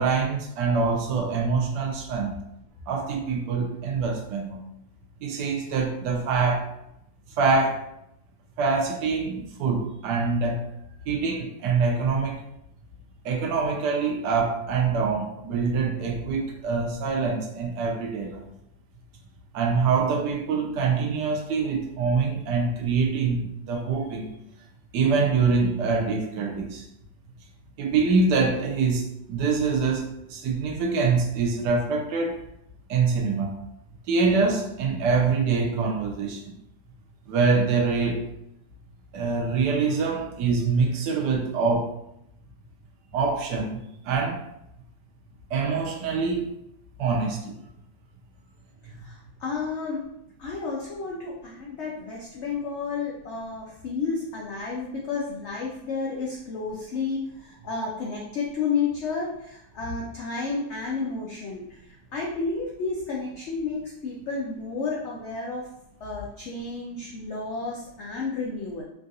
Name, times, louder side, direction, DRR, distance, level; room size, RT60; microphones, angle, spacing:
voice 1, 0.0-2.4 2.9-4.6 5.2-6.7 7.4-7.9 8.6-10.7 11.0-12.4 13.2-18.5 19.5-24.3 24.9-26.9 27.8-32.4 32.9-33.5 34.1-36.6 37.3-38.2 39.1-41.9 43.1-43.8 44.0-44.4 45.5-46.5 47.0-47.5, right 4 dB, 80° right, 1 dB, 1.2 m, -25 dB
voice 2, 48.8-50.0 50.4-61.8 62.1-65.7 66.0-68.8, left 4 dB, 85° left, -3 dB, 0.6 m, -31 dB
3.6 x 2.3 x 2.6 m, 0.78 s
omnidirectional pair, 1.8 m